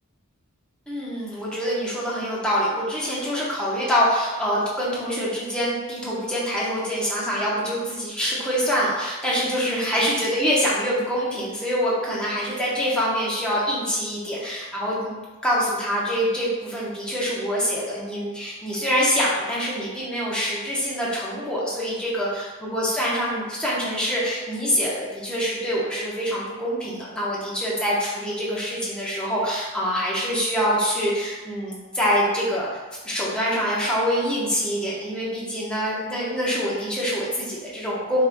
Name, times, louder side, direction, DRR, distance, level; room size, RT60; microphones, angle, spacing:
voice 1, 0.9-32.7 33.0-38.2, equal, 5° left, -7 dB, 0.9 m, -25 dB
5.6 x 2.9 x 2.2 m, 1.2 s
head